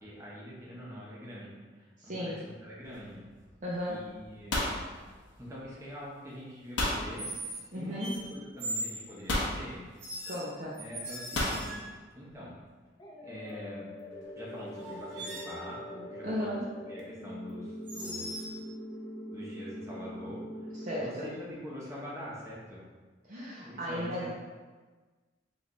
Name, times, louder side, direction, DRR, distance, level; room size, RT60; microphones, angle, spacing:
voice 1, 0.0-3.3 3.9-4.7 5.4-7.3 7.7-9.9 10.8-12.6 13.2-13.9 14.3-16.6 16.9-18.4 19.3-20.4 20.9-22.8 23.6-24.3, equal, 15° right, -6 dB, 0.8 m, -44 dB
voice 2, 2.0-2.4 3.6-4.1 7.7-8.2 10.3-10.8 16.2-16.7 20.7-21.3 23.2-24.3, equal, 45° right, -5 dB, 0.6 m, -35 dB
sound 1, 2.8-3.2 4.9-5.3 7.2-7.7 8.0-9.0 10.0-12.0 14.2-14.3 14.7-15.6 17.9-18.5, right 1 dB, 75° right, 0.8 m, -40 dB
sound 2, 2.9-3.2 3.5-3.9 4.2-5.7 6.8-7.1 8.2-8.3 9.3-9.6 11.4-11.7, left 1 dB, 70° left, 0.7 m, -31 dB
sound 3, 13.0-21.0, equal, 20° left, 0.6 m, -43 dB
3.3 x 2.5 x 3.8 m, 1.4 s
head